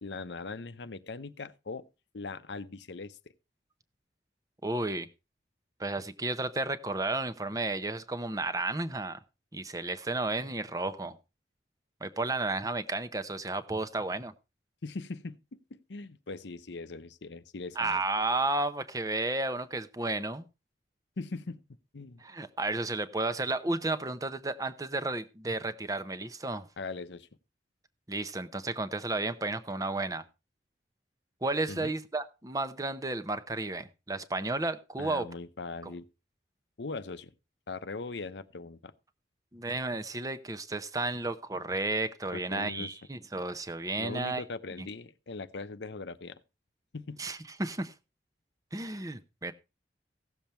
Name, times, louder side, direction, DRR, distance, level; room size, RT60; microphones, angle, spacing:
voice 1, 0.0-1.9 2.1-3.2 14.8-18.0 21.2-21.6 21.9-22.2 26.8-27.3 31.7-31.9 35.0-36.0 36.8-37.3 37.7-38.9 42.3-42.9 44.0-46.4 46.9-47.2, left 3 dB, 80° left, 0.7 m, -40 dB
voice 2, 4.6-5.1 5.8-9.2 9.5-11.2 12.0-14.3 17.8-20.4 22.2-26.7 28.1-30.2 31.4-35.3 35.8-35.9 39.5-44.4 44.8-44.9 47.2-47.9 48.7-49.5, right 2 dB, 20° right, 0.7 m, -32 dB
16.0 x 7.1 x 4.4 m
head